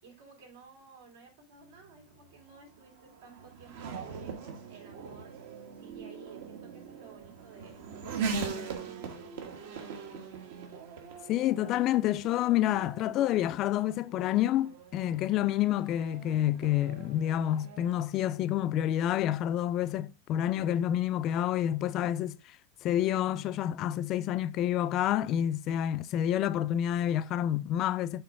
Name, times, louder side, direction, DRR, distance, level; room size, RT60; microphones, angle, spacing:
voice 1, 0.0-5.4 5.8-7.8 8.2-10.2, right 5 dB, 90° right, 3.2 m, -54 dB
Race car auto racing / Accelerating revving vroom, 1.8-18.0, right 5 dB, 70° right, 1.3 m, -41 dB
voice 2, 11.3-22.4 22.8-28.2, left 12 dB, 35° left, 0.3 m, -28 dB
5.6 x 3.7 x 5.3 m
supercardioid pair, 150°, 0 cm